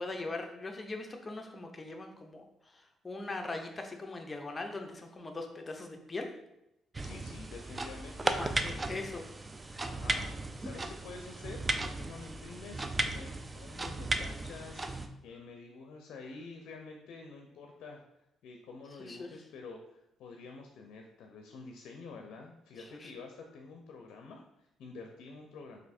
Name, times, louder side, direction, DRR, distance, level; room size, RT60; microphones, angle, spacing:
voice 1, 0.0-6.3 8.3-9.3 19.0-19.3 22.8-23.1, left 2 dB, 25° left, 3 dB, 0.6 m, -41 dB
sound 1, 6.9-15.1, right 2 dB, 25° right, 0.3 m, -36 dB
voice 2, 7.0-8.4 9.8-10.3 10.6-18.0 18.4-25.8, left 4 dB, 80° left, 3 dB, 0.4 m, -48 dB
3.2 x 2.6 x 4.1 m, 0.87 s
cardioid pair, 90°, 0 cm